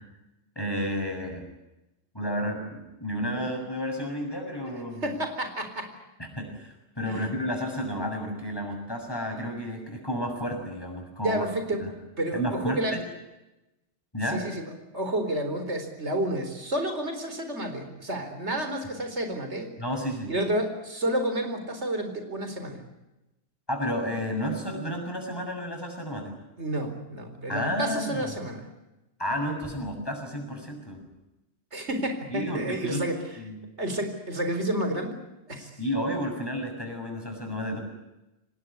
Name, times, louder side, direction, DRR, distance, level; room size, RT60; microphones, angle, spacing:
voice 1, 0.5-1.5 2.1-5.1 6.2-11.5 11.8-11.9 12.3-13.0 14.1-14.4 19.8-20.3 23.7-26.3 27.5-28.2 29.2-31.1 32.3-33.1 33.4-33.6 35.6-37.8, equal, 20° left, 3 dB, 6.8 m, -31 dB
voice 2, 5.0-5.9 7.1-7.3 11.2-11.8 12.2-13.0 14.3-19.7 20.3-22.8 26.6-28.6 31.7-33.2 33.8-35.2 35.5-35.8, right 1 dB, 90° right, 7 dB, 4.5 m, -30 dB
24.5 x 19.0 x 9.9 m, 0.98 s
omnidirectional pair, 1.1 m